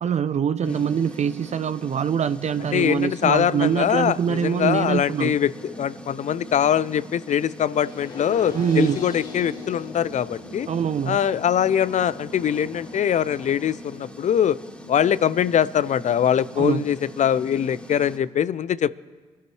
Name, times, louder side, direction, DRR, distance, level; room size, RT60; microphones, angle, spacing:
voice 1, 0.0-5.3 8.5-9.0 10.7-11.2 16.6-16.8, right 8 dB, 50° right, 13 dB, 0.6 m, -24 dB
sound 1, 0.6-18.2, equal, 10° left, 2.7 m, -42 dB
voice 2, 2.7-10.7 11.1-14.6 14.9-18.9, left 9 dB, 50° left, 18 dB, 0.5 m, -22 dB
sound 2, 7.7-13.7, left 4 dB, 75° left, 2.9 m, -41 dB
25.5 x 12.5 x 3.2 m, 1.5 s
hypercardioid pair, 40°, 15 cm